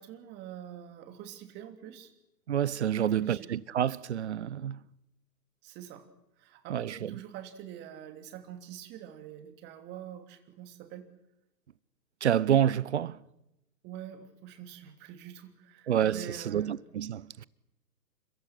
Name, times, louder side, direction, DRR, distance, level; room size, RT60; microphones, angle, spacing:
voice 1, 0.0-2.1 2.9-3.5 5.6-6.1 6.4-11.1 13.8-16.8, right 10 dB, 20° right, 2.9 m, -45 dB
voice 2, 2.5-4.8 6.7-7.1 12.2-13.2 15.9-17.4, right 10 dB, 45° right, 1.0 m, -28 dB
30.0 x 26.0 x 6.2 m
figure-of-eight pair, 125°, 48 cm